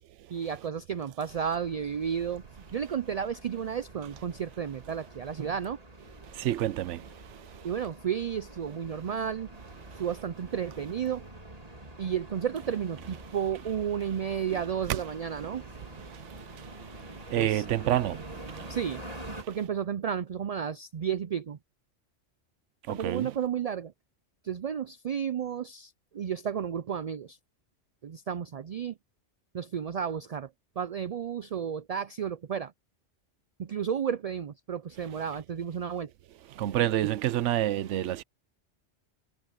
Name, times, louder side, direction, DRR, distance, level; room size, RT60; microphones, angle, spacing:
voice 1, 0.3-2.4 2.7-5.8 7.6-9.5 10.0-11.2 12.0-15.6 17.4-17.6 18.7-19.0 19.5-21.6 22.9-23.9 24.4-27.4 28.0-28.9 29.5-30.5 30.8-32.7 33.6-36.1, right 8 dB, 65° right, 0.3 m, -32 dB
sound 1, 1.3-19.4, right 1 dB, 30° right, 2.8 m, -47 dB
voice 2, 6.4-7.0 17.3-18.2 23.0-23.3 36.6-38.2, right 13 dB, 90° right, 0.9 m, -27 dB
omnidirectional pair, 1.2 m